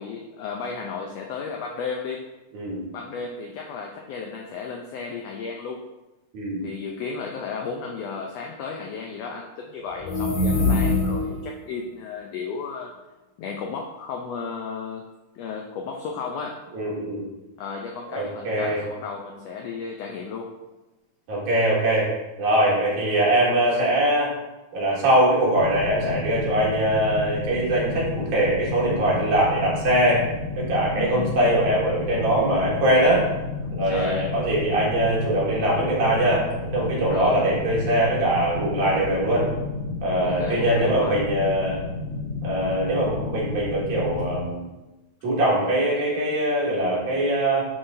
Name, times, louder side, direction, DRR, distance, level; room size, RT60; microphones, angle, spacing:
voice 1, 0.0-2.2 2.9-5.8 6.6-12.9 13.4-15.1 15.3-16.6 17.6-20.5 30.9-31.3 33.9-34.3 37.1-37.4 40.2-41.2, left 5 dB, 85° left, 1 dB, 1.4 m, -34 dB
voice 2, 2.5-2.8 6.3-6.6 10.5-10.7 16.7-17.2 18.2-18.8 21.3-22.1 22.4-24.3 24.7-30.2 30.5-33.2 33.7-36.4 36.7-39.5 40.0-41.8 42.4-44.7 45.2-47.7, right 1 dB, 80° right, -5 dB, 3.2 m, -22 dB
sound 1, 10.0-11.5, left 2 dB, 60° left, 1.4 m, -23 dB
sound 2, 25.5-44.4, left 3 dB, 30° left, 2.1 m, -32 dB
9.8 x 3.9 x 2.6 m, 1.1 s
omnidirectional pair, 3.5 m